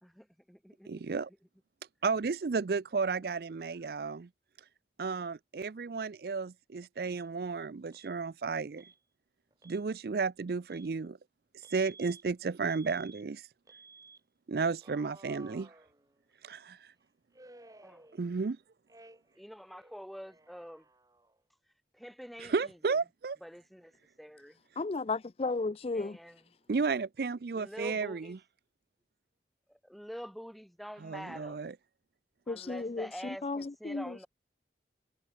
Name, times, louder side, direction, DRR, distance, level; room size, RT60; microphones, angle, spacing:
voice 1, 0.0-1.1 17.8-18.0 19.4-20.8 22.0-22.5 23.4-23.9 24.2-24.6 25.9-26.4 27.5-28.3 29.7-31.6 32.5-34.3, equal, ahead, 1.3 m, -46 dB
voice 2, 0.9-1.3 2.0-4.3 5.0-8.8 9.6-11.2 11.7-13.4 14.5-15.7 16.4-16.8 18.1-18.6 22.4-23.4 26.7-28.4 31.0-31.7, right 4 dB, 60° right, 0.4 m, -33 dB
Alarm, 7.1-7.3 7.9-8.1 8.8-9.0 9.5-9.8 10.7-10.9 11.6-12.2 12.7-13.2 13.7-14.2 14.8-16.4 17.3-18.5 18.9-19.4 19.7-21.4, right 3 dB, 20° right, 1.8 m, -56 dB
voice 3, 24.8-26.2 32.5-33.1 33.4-34.2, left 3 dB, 35° left, 0.4 m, -34 dB
head